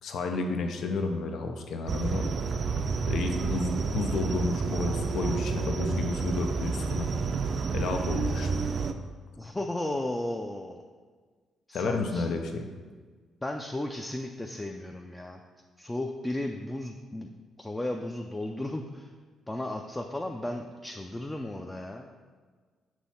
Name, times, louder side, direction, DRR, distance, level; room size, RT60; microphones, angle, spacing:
voice 1, 0.0-2.2 3.1-7.1 7.7-8.6 11.7-12.7, left 3 dB, 70° left, 5 dB, 0.6 m, -31 dB
sound 1, 1.9-8.9, right 4 dB, 50° right, 0.4 m, -30 dB
voice 2, 9.4-10.8 11.7-12.3 13.4-15.4 15.8-17.3 17.6-19.1 19.5-22.1, left 1 dB, 10° left, 2 dB, 0.4 m, -34 dB
6.2 x 3.1 x 5.6 m, 1.5 s
cardioid pair, 90°, 0 cm